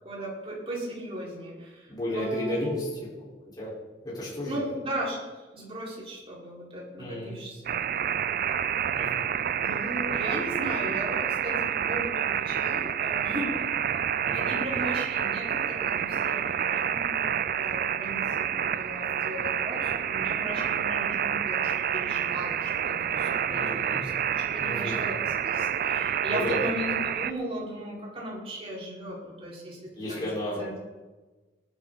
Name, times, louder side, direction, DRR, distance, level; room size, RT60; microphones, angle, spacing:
voice 1, 0.0-2.8 4.4-5.2 5.5-7.8 9.6-13.8 14.3-30.3 30.6-30.8, right 1 dB, 35° right, -5 dB, 5.0 m, -37 dB
voice 2, 1.9-2.9 3.2-3.7 4.0-4.6 7.0-7.4 8.9-9.2 14.2-14.5 23.5-24.0 24.6-25.0 26.3-26.6 29.9-30.6, left 1 dB, 25° left, -7 dB, 4.6 m, -33 dB
sound 1, 7.7-27.3, right 9 dB, 55° right, 0.5 m, -28 dB
19.5 x 11.0 x 4.1 m, 1.2 s
head